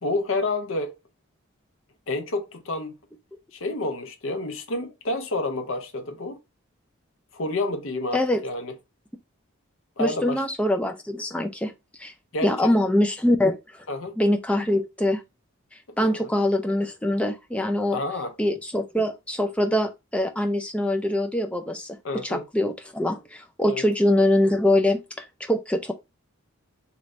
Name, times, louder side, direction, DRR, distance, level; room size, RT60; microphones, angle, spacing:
voice 1, 0.0-0.9 2.1-2.9 3.5-6.4 7.3-8.7 10.0-10.4 12.3-12.7 13.9-14.2 16.0-16.3 17.9-18.3 22.0-22.4 23.6-23.8, left 2 dB, 65° left, 0.6 m, -29 dB
voice 2, 10.0-11.7 12.0-12.1 12.4-13.8 14.2-15.2 16.0-18.0 18.4-22.0 22.2-25.9, left 1 dB, 5° left, 0.3 m, -23 dB
3.2 x 3.0 x 2.5 m
head